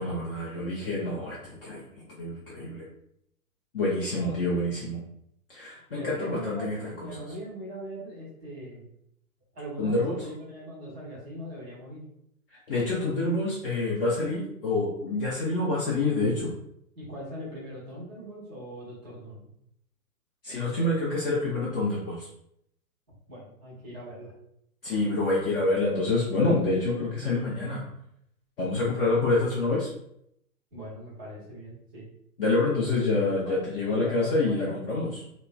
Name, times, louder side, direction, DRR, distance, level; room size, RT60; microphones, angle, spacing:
voice 1, 0.0-1.8 2.2-2.8 3.7-5.0 5.5-6.8 7.0-7.2 9.8-10.2 12.5-16.5 20.4-22.3 24.8-27.9 28.6-29.9 32.4-35.2, left 2 dB, 40° left, -6 dB, 0.6 m, -27 dB
voice 2, 4.1-4.6 5.9-8.8 9.5-12.0 16.9-19.4 23.3-24.3 30.7-32.1 32.8-33.0 33.3-34.9, equal, 5° right, -20 dB, 0.3 m, -41 dB
3.0 x 2.0 x 2.3 m, 0.74 s
figure-of-eight pair, 120°, 45 cm